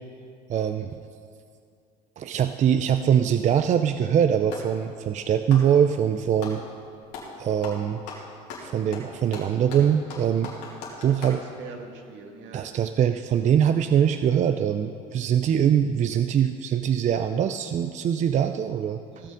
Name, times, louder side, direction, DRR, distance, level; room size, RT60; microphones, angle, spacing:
voice 1, 0.5-1.0 2.2-6.6 7.4-8.0 8.6-10.5 11.0-11.4 12.5-19.0, right 9 dB, 35° right, 9 dB, 0.4 m, -23 dB
Clapping, 4.0-4.8 5.4-6.6 7.1-7.4 7.6-11.4, left 4 dB, 85° left, 2.4 m, -39 dB
voice 2, 11.1-12.7 19.1-19.3, right 4 dB, 65° right, 3 dB, 1.7 m, -43 dB
16.0 x 6.5 x 5.1 m, 2.4 s
supercardioid pair, 85°, 21 cm